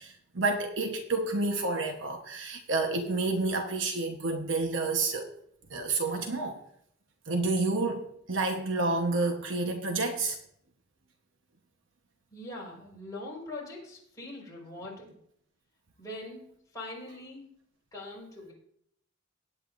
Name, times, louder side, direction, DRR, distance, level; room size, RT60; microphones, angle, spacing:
voice 1, 0.0-5.3 5.7-6.6 7.3-10.4, right 3 dB, 70° right, 4 dB, 1.1 m, -29 dB
voice 2, 12.3-15.1 16.0-16.5 16.7-17.5 17.9-18.5, left 2 dB, 15° left, -5 dB, 4.6 m, -42 dB
18.5 x 9.0 x 2.6 m, 0.69 s
head